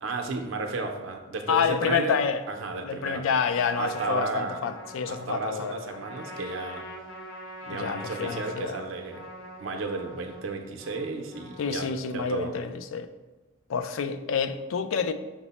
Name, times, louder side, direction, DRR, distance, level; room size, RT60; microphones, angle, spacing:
voice 1, 0.0-2.2 2.5-3.2 3.7-4.6 5.1-6.8 7.6-9.2 9.6-11.9 12.1-12.5, right 3 dB, 85° right, 0.6 m, -33 dB
voice 2, 1.5-2.4 2.8-5.9 7.7-8.8 11.6-13.1 13.7-15.1, left 6 dB, 85° left, 0.3 m, -28 dB
Trumpet, 3.3-12.0, equal, 70° left, 0.9 m, -43 dB
5.8 x 2.1 x 4.1 m
head